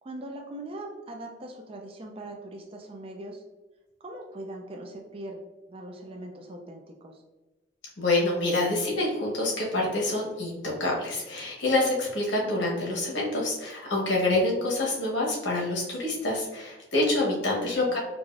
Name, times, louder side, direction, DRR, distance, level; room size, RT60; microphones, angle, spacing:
voice 1, 0.0-3.4 4.0-5.4 5.7-7.2 17.4-18.0, right 1 dB, 30° right, 2 dB, 0.4 m, -41 dB
voice 2, 8.0-18.0, left 2 dB, 80° left, -3 dB, 1.1 m, -27 dB
4.6 x 2.5 x 2.5 m, 1.1 s
head